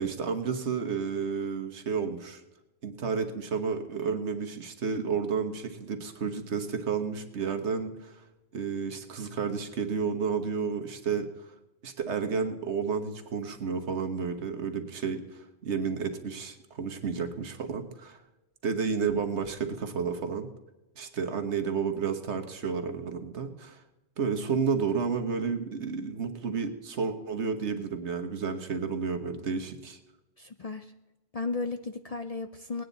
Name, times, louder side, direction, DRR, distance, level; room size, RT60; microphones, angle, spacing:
voice 1, 0.0-2.4 2.8-8.2 8.5-11.5 11.8-18.2 18.6-20.5 21.0-23.8 24.2-30.0, right 5 dB, 75° right, 6 dB, 1.5 m, -31 dB
voice 2, 30.4-30.9 31.3-32.8, left 3 dB, 45° left, 8 dB, 0.5 m, -34 dB
19.5 x 9.4 x 4.0 m, 1.0 s
omnidirectional pair, 1.2 m